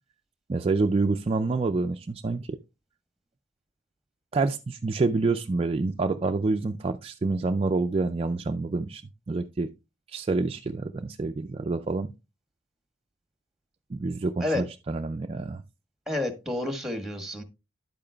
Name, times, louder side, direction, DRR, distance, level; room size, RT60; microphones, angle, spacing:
voice 1, 0.5-2.6 4.3-9.0 9.3-9.7 10.1-12.1 13.9-15.6, right 3 dB, 30° right, 0.4 m, -27 dB
voice 2, 16.1-17.4, left 2 dB, ahead, 1.3 m, -29 dB
11.0 x 8.7 x 2.3 m
head